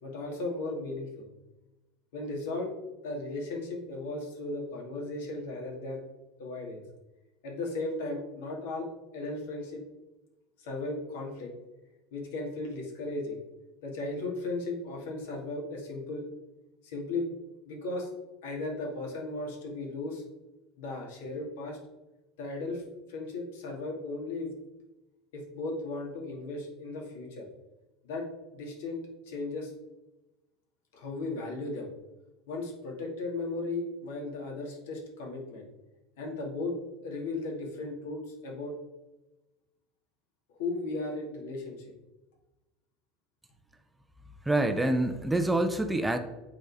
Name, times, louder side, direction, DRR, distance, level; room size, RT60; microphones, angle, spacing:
voice 1, 0.0-1.3 2.1-2.7 3.0-6.0 6.4-6.8 7.4-8.9 9.1-9.8 10.6-11.5 12.1-13.4 13.8-16.3 16.8-17.3 17.6-18.1 18.4-20.2 20.8-21.8 22.4-22.8 23.1-24.5 25.3-27.5 28.0-29.0 29.2-29.7 30.9-31.9 32.5-35.7 36.2-36.7 37.0-38.8 40.5-41.8, left 2 dB, 85° left, 0 dB, 2.4 m, -36 dB
voice 2, 44.5-46.2, right 1 dB, 5° right, 8 dB, 0.4 m, -26 dB
8.4 x 4.0 x 4.9 m, 1.1 s
supercardioid pair, 170°, 0 cm